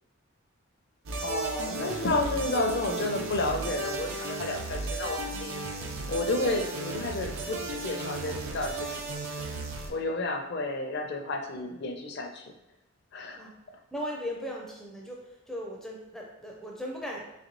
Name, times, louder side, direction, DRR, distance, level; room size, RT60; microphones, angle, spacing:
sound 1, 1.1-9.9, right 3 dB, 75° right, 0.6 m, -35 dB
voice 1, 1.2-9.0 9.9-12.5 13.1-13.4, left 2 dB, 50° left, 3 dB, 0.5 m, -31 dB
voice 2, 13.9-17.2, equal, ahead, -2 dB, 0.4 m, -38 dB
4.0 x 3.1 x 3.0 m, 0.95 s
head